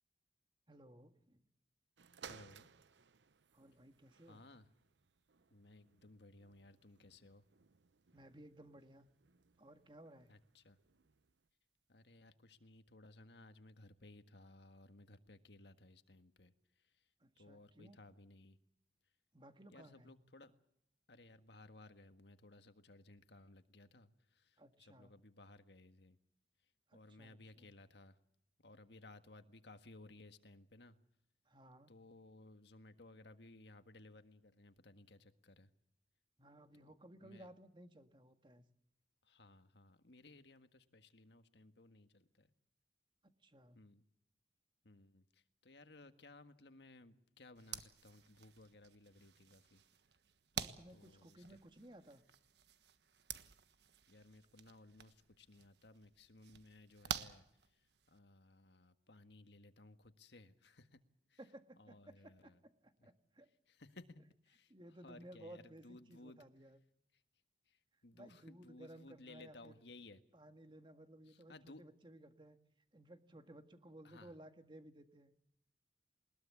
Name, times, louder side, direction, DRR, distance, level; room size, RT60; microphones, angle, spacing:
voice 1, 0.7-1.5 3.5-4.4 8.1-9.1 9.6-10.3 17.2-18.0 19.3-20.2 24.6-25.2 26.9-27.7 31.5-31.9 36.4-38.7 43.2-43.8 50.5-52.2 61.4-63.5 64.7-66.8 68.1-69.8 70.3-72.6 72.9-75.3, right 1 dB, 25° right, 8 dB, 1.8 m, -58 dB
sound 1, 2.0-11.5 12.2-12.3, right 6 dB, 90° right, 0.8 m, -62 dB
voice 2, 2.2-2.7 4.3-4.6 5.5-7.4 10.3-10.8 11.9-16.5 17.4-18.6 19.7-20.5 21.1-26.2 26.9-28.1 28.6-31.0 31.9-35.7 36.9-37.5 39.2-42.5 43.7-44.0 44.8-49.8 50.9-51.4 54.1-57.4 58.1-61.0 61.3-61.4 61.8-62.6 63.0-63.1 63.7-64.7 65.0-66.4 67.7-67.8 68.0-70.2 71.3-71.8 74.0-74.3, left 2 dB, 75° left, 9 dB, 1.7 m, -60 dB
sound 2, 47.5-58.2, right 7 dB, 75° right, 1.4 m, -50 dB
21.5 x 20.5 x 8.3 m, 0.75 s
head